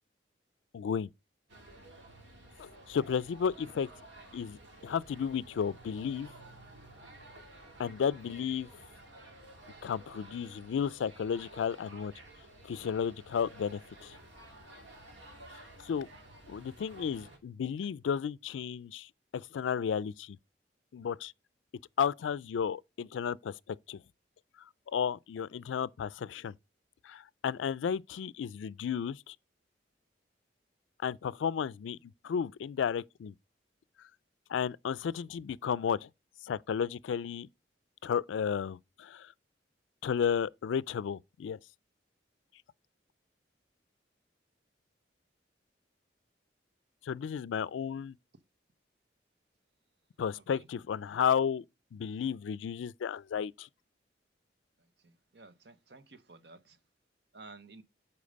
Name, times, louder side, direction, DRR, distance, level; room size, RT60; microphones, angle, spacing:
voice 1, 0.7-1.1 2.6-3.9 4.3-6.3 7.8-8.7 9.8-12.1 12.6-14.1 15.8-16.1 16.5-19.1 19.3-20.4 20.9-21.3 22.0-24.0 24.9-26.5 27.0-29.4 31.0-32.0 32.2-33.3 34.5-36.1 36.4-37.5 38.0-39.3 40.0-41.6 47.0-48.2 50.2-51.6 51.9-53.7, left 7 dB, 90° left, 0.3 m, -33 dB
sound 1, 1.5-17.4, right 1 dB, 80° right, 2.4 m, -53 dB
voice 2, 55.0-56.8 57.3-57.8, right 3 dB, 60° right, 0.8 m, -53 dB
8.5 x 4.7 x 5.1 m
head